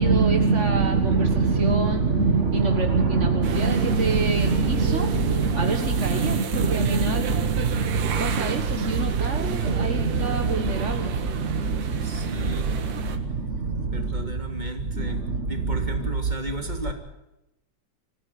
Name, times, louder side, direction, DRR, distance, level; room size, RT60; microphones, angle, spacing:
voice 1, 0.0-16.4, right 4 dB, 40° right, 5 dB, 1.0 m, -23 dB
sound 1, 3.4-13.2, right 7 dB, 80° right, 3.3 m, -35 dB
voice 2, 12.0-12.7 13.8-15.2 15.5-16.9, right 1 dB, 15° right, 3 dB, 2.8 m, -35 dB
25.5 x 15.5 x 9.4 m, 0.92 s
omnidirectional pair, 3.7 m